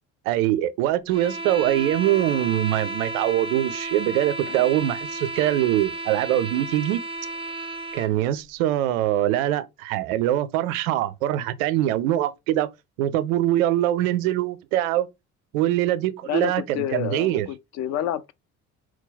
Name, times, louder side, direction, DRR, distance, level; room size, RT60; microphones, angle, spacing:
voice 1, 0.3-7.0 7.9-12.7 13.0-15.1 15.5-17.5, right 13 dB, 65° right, 0.6 m, -23 dB
sound 1, 1.1-8.2, right 2 dB, 15° right, 0.5 m, -33 dB
voice 2, 16.2-18.3, left 11 dB, 40° left, 0.4 m, -29 dB
4.5 x 2.2 x 3.9 m
figure-of-eight pair, 55°, 44 cm